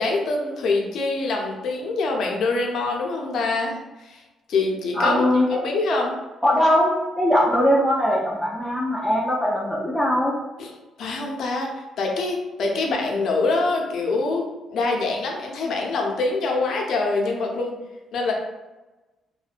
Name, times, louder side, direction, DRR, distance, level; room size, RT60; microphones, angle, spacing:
voice 1, 0.0-4.2 4.5-5.3 5.5-6.1 10.6-10.7 11.0-17.7 18.1-18.3, left 3 dB, 65° left, 0 dB, 0.5 m, -25 dB
voice 2, 5.0-5.6 6.4-10.4, left 1 dB, ahead, -6 dB, 0.4 m, -20 dB
2.6 x 2.2 x 2.4 m, 1.1 s
cardioid pair, 115°, 0 cm